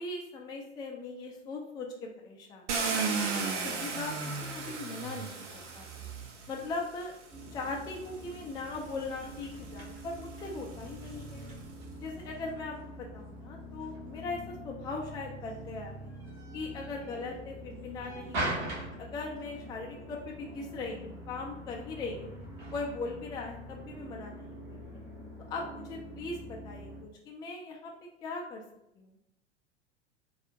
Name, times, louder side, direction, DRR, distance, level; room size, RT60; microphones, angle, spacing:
voice 1, 0.0-4.2 4.5-5.3 5.7-6.1 6.5-7.1 7.5-11.4 12.0-16.1 16.5-22.3 22.7-25.0 25.5-28.6 29.0-29.1, left 3 dB, 10° left, 1 dB, 0.3 m, -40 dB
Car, 2.7-6.8 7.7-7.8 8.4-11.7, right 4 dB, 70° right, 0.7 m, -36 dB
sound 1, 7.3-27.0, equal, 5° right, 1.0 m, -46 dB
sound 2, 7.3-23.2, right 2 dB, 50° right, 1.4 m, -45 dB
4.3 x 2.4 x 2.4 m, 0.83 s
figure-of-eight pair, 85°, 36 cm